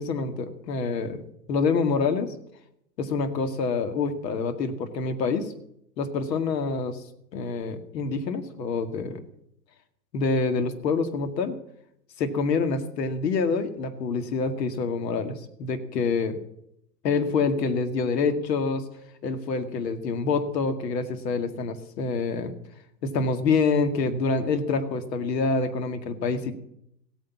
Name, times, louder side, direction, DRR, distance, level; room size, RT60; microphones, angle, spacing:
voice 1, 0.0-2.3 3.0-5.5 6.0-7.0 7.3-9.2 10.1-11.6 12.2-16.4 17.0-18.9 19.2-22.5 23.0-26.6, left 4 dB, 75° left, 8 dB, 2.2 m, -26 dB
16.0 x 9.4 x 7.2 m, 0.73 s
hypercardioid pair, 120°, 49 cm